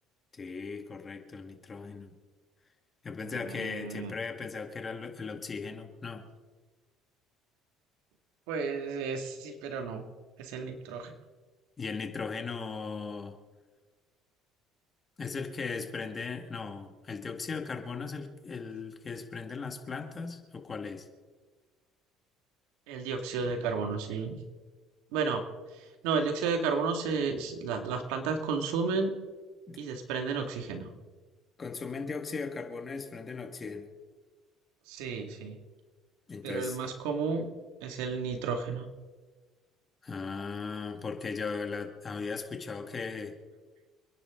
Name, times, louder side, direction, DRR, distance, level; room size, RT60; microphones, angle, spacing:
voice 1, 0.3-2.2 3.0-6.3 11.8-13.4 15.2-21.1 29.7-29.8 31.6-33.9 36.3-36.8 40.0-43.3, left 4 dB, 25° left, 5 dB, 2.0 m, -37 dB
voice 2, 3.2-4.1 8.5-10.0 10.4-11.1 22.9-24.4 25.1-25.4 25.8-29.1 29.8-30.9 34.9-35.6 36.4-37.5 37.8-38.9, right 5 dB, 85° right, 4 dB, 2.3 m, -32 dB
28.5 x 10.5 x 3.9 m, 1.4 s
cardioid pair, 115°, 0 cm